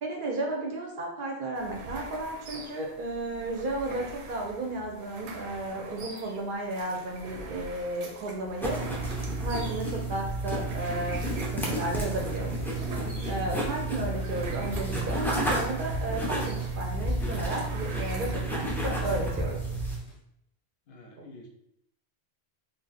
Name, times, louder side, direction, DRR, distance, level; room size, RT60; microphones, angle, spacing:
voice 1, 0.0-8.8 9.4-11.2 11.5-12.5 13.2-19.6 21.2-21.3, right 2 dB, 60° right, 0 dB, 0.6 m, -33 dB
sound 1, 1.5-19.5, right 3 dB, 90° right, 0.9 m, -45 dB
sound 2, 8.6-20.0, right 2 dB, 5° left, 0.3 m, -31 dB
sound 3, 12.5-20.2, left 2 dB, 90° left, 0.9 m, -44 dB
voice 2, 20.9-21.5, left 2 dB, 60° left, 2 dB, 0.7 m, -48 dB
2.5 x 2.1 x 3.9 m, 0.75 s
omnidirectional pair, 1.1 m